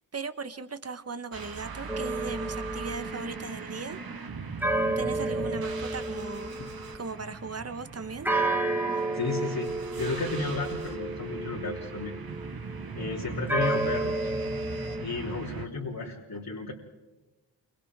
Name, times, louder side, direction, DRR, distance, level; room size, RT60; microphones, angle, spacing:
voice 1, 0.1-4.0 5.0-6.6 6.9-8.3 8.9-9.0, right 4 dB, 35° right, 10 dB, 1.4 m, -38 dB
sound 1, 1.3-15.7, right 4 dB, 55° right, 1.8 m, -40 dB
sound 2, 1.9-3.5 4.6-7.1 8.3-13.1 13.5-15.0, right 2 dB, 5° right, 1.7 m, -31 dB
voice 2, 9.1-12.2 12.9-14.3 15.0-16.7, left 3 dB, 55° left, -4 dB, 3.5 m, -33 dB
28.5 x 25.5 x 3.7 m, 1.1 s
cardioid pair, 65°, 42 cm